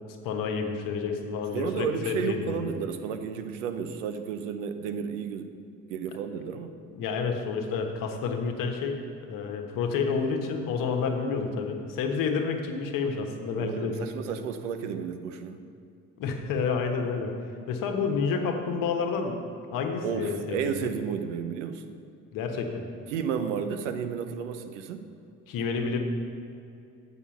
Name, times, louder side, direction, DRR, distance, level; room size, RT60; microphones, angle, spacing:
voice 1, 0.2-2.6 6.9-9.0 9.3-14.1 16.2-17.3 17.7-19.4 19.7-20.9 22.3-22.9 25.5-26.0, left 5 dB, 65° left, 4 dB, 1.3 m, -29 dB
voice 2, 1.5-5.5 5.9-6.7 13.6-15.6 20.0-22.0 23.1-25.1, right 7 dB, 85° right, 8 dB, 0.7 m, -32 dB
7.2 x 6.1 x 7.1 m, 2.4 s
hypercardioid pair, 65°, 36 cm